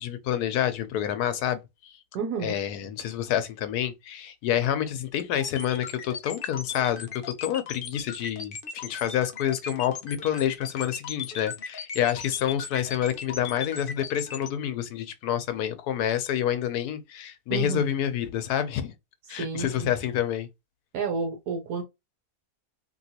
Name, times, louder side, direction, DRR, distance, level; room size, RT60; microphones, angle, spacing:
voice 1, 0.0-1.9 2.4-18.9 19.3-20.5, left 10 dB, 80° left, 1.1 m, -28 dB
voice 2, 2.1-2.5 17.5-17.9 19.3-19.9 20.9-21.8, right 5 dB, 75° right, 1.3 m, -31 dB
sound 1, 5.4-14.5, left 6 dB, 50° left, 0.6 m, -37 dB
3.0 x 2.9 x 2.8 m
omnidirectional pair, 1.7 m